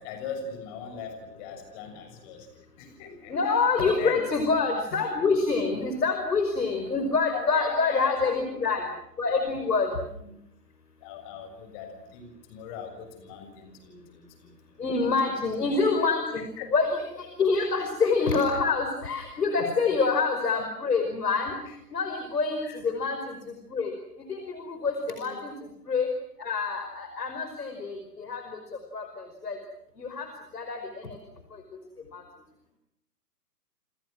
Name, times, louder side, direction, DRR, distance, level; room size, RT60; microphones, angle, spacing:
voice 1, 0.0-2.5 2.8-4.3 4.9-5.0 7.0-8.6 10.2-10.3 11.0-14.7 15.6-15.7 16.3-16.7 17.5-17.7 18.0-18.3 19.5-20.0 21.7-21.8 22.6-22.8 25.2-25.4, left 6 dB, 25° left, 7 dB, 6.8 m, -40 dB
voice 2, 3.3-8.8 9.2-10.0 14.8-21.5 21.9-23.4 23.7-23.9 24.3-25.5 25.9-26.1 26.4-28.6 28.9-29.6 30.0-30.3 30.5-31.2 32.1-32.2, left 4 dB, 70° left, 6 dB, 5.3 m, -26 dB
30.0 x 27.0 x 6.3 m, 0.79 s
figure-of-eight pair, 135°, 49 cm